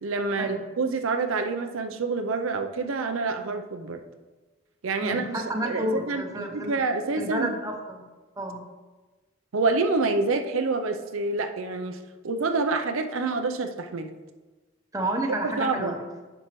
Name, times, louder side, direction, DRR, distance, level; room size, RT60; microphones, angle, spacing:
voice 1, 0.0-4.0 4.8-5.3 5.6-7.6 9.5-12.0 12.2-14.1 15.4-15.9, right 3 dB, 80° right, 6 dB, 0.5 m, -27 dB
voice 2, 5.0-6.8 7.2-8.1 8.4-8.6 14.9-16.0, right 1 dB, 15° right, 2 dB, 0.8 m, -30 dB
9.8 x 6.3 x 3.1 m, 1.2 s
head